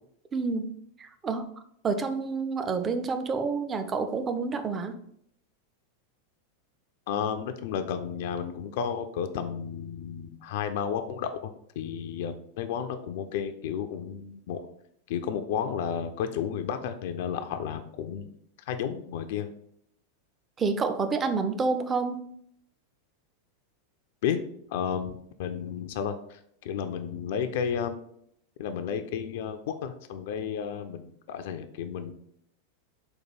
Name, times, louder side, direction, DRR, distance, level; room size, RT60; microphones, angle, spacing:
voice 1, 0.3-0.7 1.0-1.5 1.8-5.0 20.6-22.3, right 4 dB, 20° right, 9 dB, 0.4 m, -28 dB
voice 2, 7.1-11.5 11.8-14.6 15.1-18.3 18.7-19.5 24.2-24.4 24.7-25.1 25.4-28.0 28.6-32.1, left 8 dB, 50° left, 8 dB, 0.3 m, -32 dB
4.4 x 2.2 x 4.6 m, 0.70 s
figure-of-eight pair, 90°, 0 cm